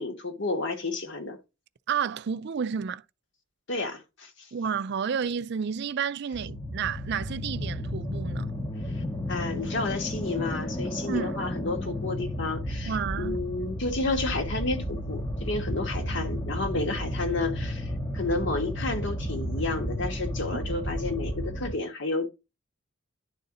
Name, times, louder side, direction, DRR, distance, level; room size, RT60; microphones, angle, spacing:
voice 1, 0.0-1.4 3.7-4.5 8.9-22.3, left 3 dB, 55° left, 1.4 m, -31 dB
voice 2, 1.9-3.0 4.5-8.5 11.1-11.4 12.9-13.4, right 7 dB, 50° right, 0.4 m, -31 dB
sound 1, 6.3-21.8, equal, 15° left, 0.9 m, -33 dB
10.5 x 4.1 x 3.8 m
head